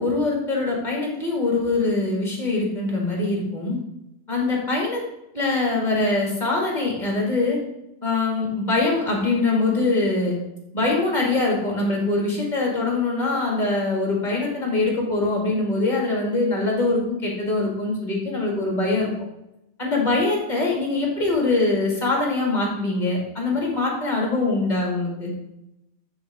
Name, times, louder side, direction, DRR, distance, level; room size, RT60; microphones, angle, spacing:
voice 1, 0.0-3.8 4.3-5.0 5.3-7.6 8.0-10.4 10.7-19.1 19.8-25.3, left 3 dB, 40° left, -2 dB, 2.2 m, -23 dB
9.6 x 3.8 x 4.9 m, 0.89 s
omnidirectional pair, 1.2 m